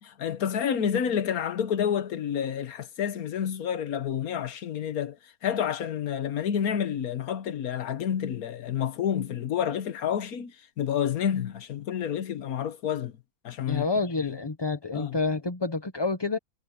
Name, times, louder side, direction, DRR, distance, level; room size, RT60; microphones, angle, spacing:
voice 1, 0.0-13.1 13.4-13.9 14.2-14.4 14.9-15.2, left 8 dB, 80° left, 1.5 m, -29 dB
voice 2, 13.7-16.4, left 3 dB, 20° left, 0.7 m, -28 dB
omnidirectional pair, 1.5 m